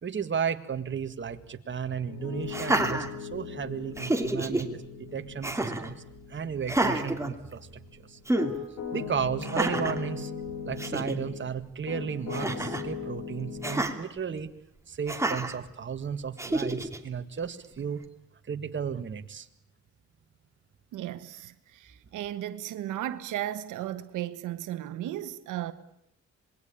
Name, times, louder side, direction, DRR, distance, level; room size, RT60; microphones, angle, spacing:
voice 1, 0.0-6.0 6.3-8.2 8.9-10.3 10.7-14.5 14.9-18.0 18.5-19.5, right 7 dB, 40° right, 1.8 m, -34 dB
Piano, 2.1-11.4 11.9-13.9, left 6 dB, 70° left, 6.5 m, -39 dB
Laughter, 2.5-3.6 4.0-4.6 5.4-5.9 6.6-7.9 8.3-8.5 9.4-10.0 10.5-10.6 10.8-11.2 12.3-12.9 13.6-13.9 15.1-15.6 16.4-17.0, right 2 dB, 10° right, 2.7 m, -29 dB
voice 2, 20.9-25.7, right 12 dB, 85° right, 1.3 m, -35 dB
26.5 x 21.0 x 8.7 m
cardioid pair, 90°, 30 cm